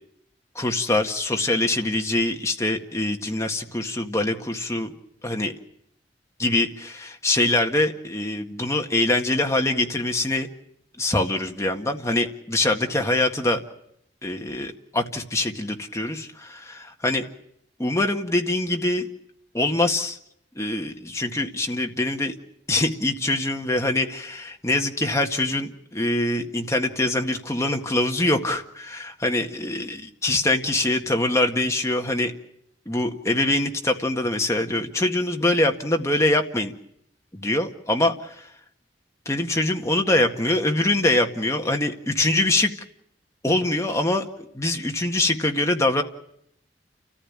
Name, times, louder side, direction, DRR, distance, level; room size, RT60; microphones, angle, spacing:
voice 1, 0.6-4.9 5.2-5.5 6.4-10.5 11.0-13.6 14.2-17.2 17.8-19.1 19.5-20.2 20.6-22.3 22.7-32.3 32.9-36.7 37.3-38.5 39.3-42.7 43.4-46.0, left 2 dB, 15° left, 3 dB, 1.8 m, -24 dB
30.0 x 14.5 x 8.8 m, 0.74 s
head